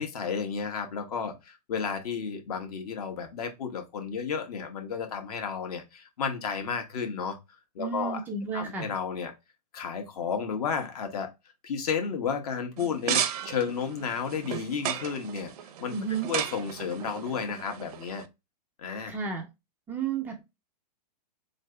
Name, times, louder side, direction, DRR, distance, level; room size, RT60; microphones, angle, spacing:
voice 1, 0.0-7.4 7.7-8.2 8.5-9.3 9.7-11.3 11.6-15.5 15.8-15.9 16.3-18.2 18.8-19.1, left 6 dB, 60° left, 1.3 m, -32 dB
voice 2, 7.8-8.9 15.9-16.3 19.1-19.5 19.9-20.4, right 6 dB, 10° right, 0.3 m, -32 dB
sound 1, 12.8-18.3, right 10 dB, 65° right, 0.6 m, -34 dB
3.9 x 3.3 x 3.2 m
hypercardioid pair, 160°, 21 cm